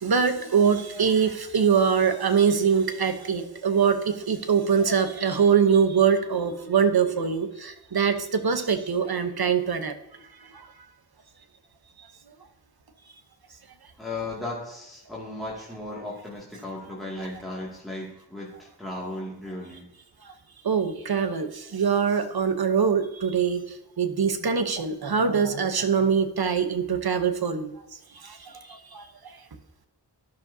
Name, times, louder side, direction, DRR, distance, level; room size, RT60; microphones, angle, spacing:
voice 1, 0.0-9.9 20.6-23.6 24.0-27.7 28.2-28.5 28.9-29.0, right 6 dB, 60° right, 9 dB, 0.9 m, -23 dB
voice 2, 14.0-19.8, left 2 dB, ahead, -6 dB, 2.2 m, -36 dB
12.5 x 6.0 x 2.7 m, 0.90 s
wide cardioid pair, 45°, 42 cm